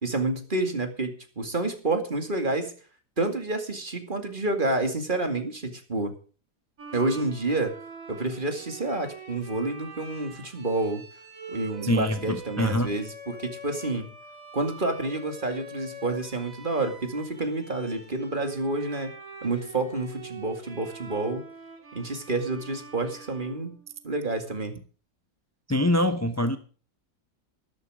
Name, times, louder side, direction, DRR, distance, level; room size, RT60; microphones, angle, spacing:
voice 1, 0.0-2.7 3.2-6.1 6.9-7.7 8.1-11.0 11.5-14.1 14.5-19.1 19.4-21.4 21.9-23.7 24.0-24.8, right 2 dB, 30° right, 6 dB, 2.4 m, -29 dB
Bowed string instrument, 6.8-24.2, right 2 dB, 55° right, 3.3 m, -44 dB
voice 2, 11.8-12.9 25.7-26.6, left 1 dB, 15° left, 9 dB, 0.6 m, -24 dB
13.0 x 13.0 x 5.0 m, 0.39 s
omnidirectional pair, 1.7 m